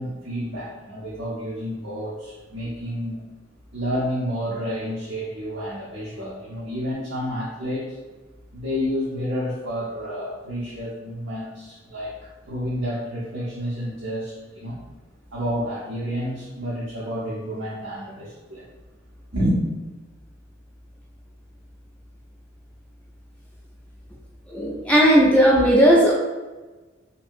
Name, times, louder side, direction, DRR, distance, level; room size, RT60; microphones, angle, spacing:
voice 1, 0.0-3.2 3.7-8.0 8.5-14.8 15.3-18.6 19.3-19.6, equal, 75° right, -6 dB, 0.6 m, -29 dB
voice 2, 24.5-26.1, equal, 5° left, -4 dB, 0.3 m, -16 dB
2.6 x 2.6 x 2.5 m, 1.2 s
head